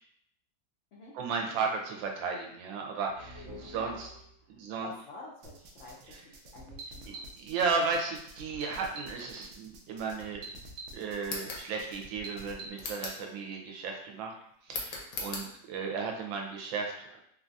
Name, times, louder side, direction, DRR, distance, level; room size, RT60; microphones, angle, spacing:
voice 1, 1.1-4.1 4.5-4.9 7.1-10.5 10.9-14.3 14.7-17.2, right 4 dB, 90° right, 1 dB, 1.4 m, -34 dB
sound 1, 3.0-4.6, left 1 dB, 50° right, 1.4 m, -48 dB
voice 2, 3.6-4.0 4.5-7.4 15.2-15.5, left 3 dB, 85° left, -5 dB, 0.6 m, -50 dB
sound 2, 5.4-12.7, right 2 dB, 70° right, 0.9 m, -47 dB
sound 3, 11.2-11.7 12.8-13.3 14.7-15.5, left 3 dB, 65° left, 0.9 m, -38 dB
3.6 x 2.3 x 2.6 m, 0.69 s
omnidirectional pair, 2.0 m